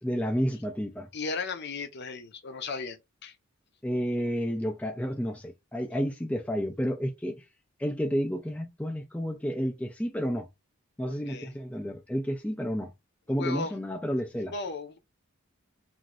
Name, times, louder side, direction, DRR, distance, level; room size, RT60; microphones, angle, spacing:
voice 1, 0.0-1.1 3.8-7.4 7.8-10.5 11.0-12.9 13.3-14.5, equal, 5° left, 0.4 m, -31 dB
voice 2, 1.1-3.3 11.1-11.5 13.4-13.8 14.5-15.0, left 4 dB, 50° left, 0.6 m, -36 dB
3.0 x 2.6 x 2.4 m
head